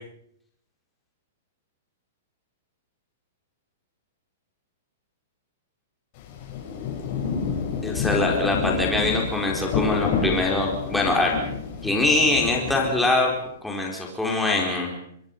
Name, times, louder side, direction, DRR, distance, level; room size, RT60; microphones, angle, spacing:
Rain, 6.2-13.4, left 5 dB, 40° left, 8.0 m, -29 dB
voice 1, 7.8-11.3 11.8-13.3 13.6-14.9, left 2 dB, 5° left, -1 dB, 4.4 m, -23 dB
25.5 x 21.5 x 5.5 m, 0.70 s
hypercardioid pair, 155°, 0 cm